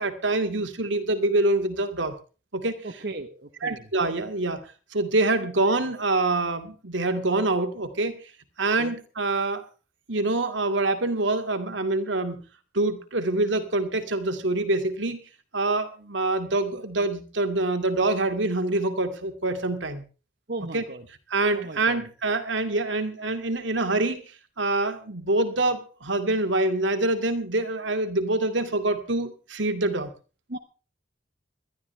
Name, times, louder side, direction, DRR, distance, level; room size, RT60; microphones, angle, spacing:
voice 1, 0.0-2.1 2.5-2.9 3.6-4.6 4.9-8.2 8.6-9.6 10.1-12.4 12.7-15.2 15.5-20.0 20.7-20.8 21.3-24.3 24.6-30.1, right 2 dB, 85° right, 7 dB, 2.4 m, -25 dB
voice 2, 2.8-3.9 8.8-9.0 20.5-21.1 21.5-22.1 30.5-30.6, right 2 dB, 55° right, 6 dB, 1.2 m, -36 dB
21.5 x 13.0 x 3.4 m, 0.34 s
head